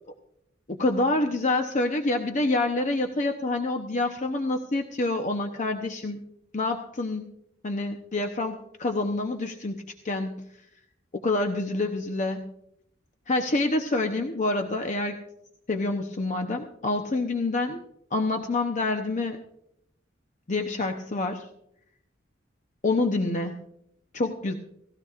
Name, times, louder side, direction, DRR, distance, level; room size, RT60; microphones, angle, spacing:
voice 1, 0.8-6.2 6.5-7.3 7.6-10.5 11.2-12.5 13.3-15.2 15.7-17.8 18.1-19.4 20.5-21.5 22.8-23.6 24.1-24.5, left 2 dB, 40° left, 4 dB, 0.8 m, -27 dB
18.0 x 15.5 x 2.5 m, 0.76 s
head